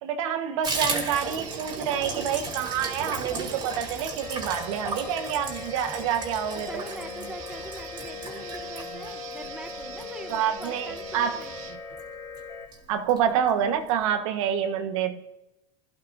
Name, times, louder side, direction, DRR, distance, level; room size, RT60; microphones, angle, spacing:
voice 1, 0.0-6.8 10.3-11.4 12.9-15.2, right 8 dB, 70° right, 8 dB, 1.4 m, -27 dB
Water tap faucet / Bathtub (filling or washing), 0.6-11.6 11.9-12.1 12.3-12.4 12.7-13.2 13.5-13.6 13.9-14.0, right 3 dB, 25° right, 3.5 m, -36 dB
sound 1, 1.1-11.8, right 11 dB, 50° right, 1.1 m, -44 dB
sound 2, 4.2-12.7, left 5 dB, 25° left, 4.4 m, -40 dB
voice 2, 6.5-11.7, right 1 dB, 5° right, 8 dB, 1.1 m, -43 dB
26.0 x 15.0 x 2.7 m, 0.93 s
supercardioid pair, 145°, 17 cm